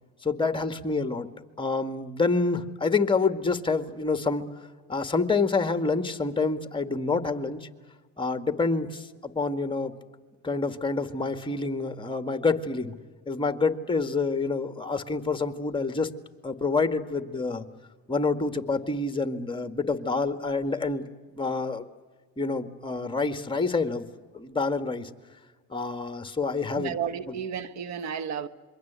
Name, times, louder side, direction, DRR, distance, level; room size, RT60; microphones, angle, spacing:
voice 1, 0.2-1.3 1.6-4.4 4.9-7.6 8.2-9.9 10.4-12.9 13.3-16.1 16.4-17.6 18.1-21.0 21.4-21.9 22.4-24.0 24.3-25.1 25.7-26.9 27.3-27.4, left 4 dB, 15° left, 2.0 m, -27 dB
voice 2, 26.8-28.5, right 8 dB, 70° right, 1.3 m, -32 dB
27.0 x 23.0 x 8.3 m
supercardioid pair, 85°, 29 cm